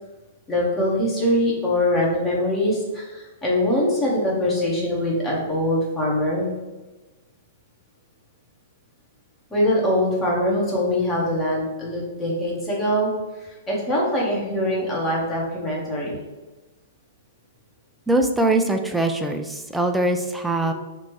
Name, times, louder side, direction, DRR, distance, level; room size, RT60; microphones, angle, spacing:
voice 1, 0.5-6.5 9.5-13.1 13.4-16.2, left 1 dB, 20° left, -4 dB, 1.0 m, -23 dB
voice 2, 18.1-20.7, right 2 dB, 5° right, 4 dB, 0.3 m, -22 dB
3.0 x 2.6 x 3.1 m, 1.2 s
hypercardioid pair, 110°, 0 cm